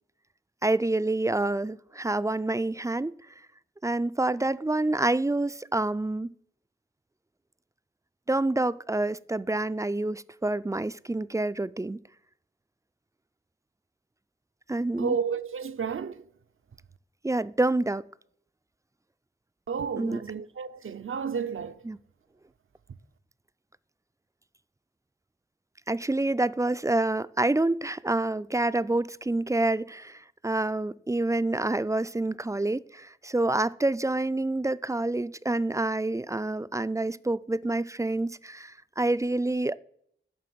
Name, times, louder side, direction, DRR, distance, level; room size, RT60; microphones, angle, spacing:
voice 1, 0.6-3.1 3.8-6.3 8.3-12.0 14.7-15.2 17.2-18.1 20.0-20.2 21.9-22.0 25.9-39.8, right 2 dB, 15° right, 0.3 m, -27 dB
voice 2, 15.0-16.3 19.7-21.8, right 6 dB, 75° right, 0.6 m, -32 dB
11.0 x 3.8 x 7.6 m
cardioid pair, 45°, 21 cm